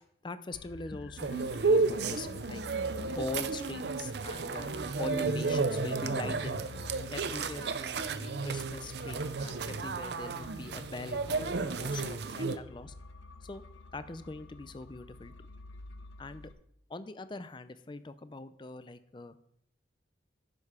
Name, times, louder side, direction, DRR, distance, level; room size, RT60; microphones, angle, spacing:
voice 1, 0.0-2.6 3.1-6.7 7.1-12.9 13.4-13.6 13.9-15.3 16.2-16.5 16.9-19.4, left 2 dB, 25° left, 13 dB, 0.5 m, -42 dB
sound 1, 0.5-16.5, left 4 dB, 90° left, 0.6 m, -50 dB
sound 2, 1.2-12.6, right 4 dB, 60° right, 0.6 m, -32 dB
9.9 x 6.7 x 4.9 m, 0.73 s
head